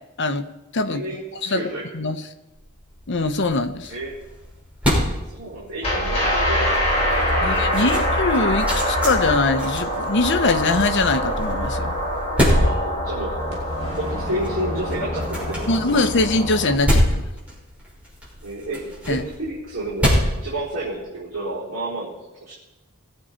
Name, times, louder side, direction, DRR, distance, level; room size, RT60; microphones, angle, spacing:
voice 1, 0.9-1.9 3.9-4.2 5.3-8.0 12.5-13.4 14.0-16.0 18.4-20.1 20.4-22.5, right 1 dB, 60° right, -8 dB, 4.2 m, -31 dB
sound 1, 2.5-21.3, equal, 5° right, 5.9 m, -27 dB
voice 2, 3.1-3.9 7.4-11.9 15.7-17.2 19.1-19.2, left 3 dB, 55° left, 8 dB, 0.9 m, -22 dB
sound 2, 5.8-16.8, equal, 30° left, 3.7 m, -24 dB
20.5 x 8.7 x 4.5 m, 1.0 s
head